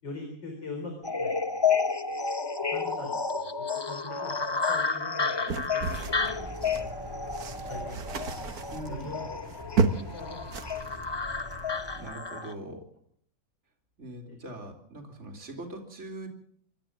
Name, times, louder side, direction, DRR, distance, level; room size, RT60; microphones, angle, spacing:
voice 1, 0.0-1.7 2.1-2.2 2.7-5.8 6.2-6.9 7.7-8.4 8.7-11.7 14.3-14.4, left 2 dB, 85° left, 3 dB, 4.8 m, -43 dB
sound 1, 1.0-12.5, left 5 dB, 25° left, 0.5 m, -31 dB
sound 2, 5.5-6.9 7.3-10.2 10.5-11.0 11.4-11.6, right 4 dB, 60° right, 1.8 m, -31 dB
Car, 5.8-12.1, right 1 dB, 10° right, 3.1 m, -44 dB
voice 2, 8.7-9.1 12.0-12.9 14.0-16.3, right 1 dB, 40° right, 3 dB, 3.5 m, -41 dB
26.0 x 13.5 x 7.5 m, 0.64 s
omnidirectional pair, 1.9 m